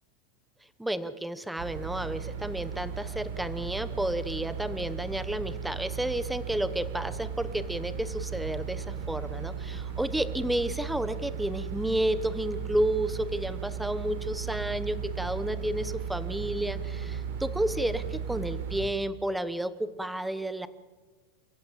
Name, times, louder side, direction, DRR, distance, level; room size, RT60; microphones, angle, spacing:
voice 1, 0.8-20.7, right 1 dB, 5° right, 14 dB, 0.9 m, -31 dB
sound 1, 1.6-18.9, right 7 dB, 70° right, 4.3 m, -36 dB
29.0 x 16.0 x 7.4 m, 1.3 s
supercardioid pair, 165°, 0 cm